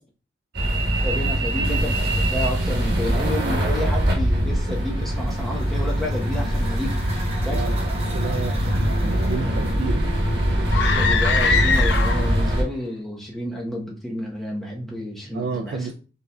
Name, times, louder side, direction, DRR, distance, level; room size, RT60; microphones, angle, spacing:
sound 1, 0.5-12.6, equal, 90° right, 1.3 m, -22 dB
voice 1, 1.0-7.0 7.4-7.6 11.0-15.9, left 1 dB, ahead, -3 dB, 0.9 m, -30 dB
sound 2, 4.6-9.9, right 2 dB, 35° right, 0.9 m, -41 dB
voice 2, 7.5-7.9 8.1-10.1 15.3-15.9, right 5 dB, 65° right, 7 dB, 0.3 m, -31 dB
sound 3, 10.7-12.5, left 5 dB, 80° left, 0.5 m, -22 dB
5.4 x 3.3 x 2.3 m, 0.37 s
head